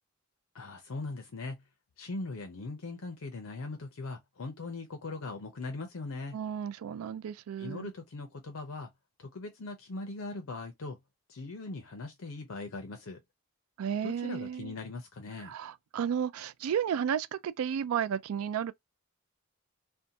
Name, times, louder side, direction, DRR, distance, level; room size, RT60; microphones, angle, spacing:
voice 1, 0.5-1.6 2.0-6.4 7.6-8.9 9.2-11.0 11.3-13.2 14.0-15.5, left 3 dB, 75° left, 0.6 m, -40 dB
voice 2, 6.3-7.9 13.8-14.7 15.4-18.7, right 8 dB, 85° right, 0.3 m, -33 dB
2.6 x 2.2 x 2.6 m
head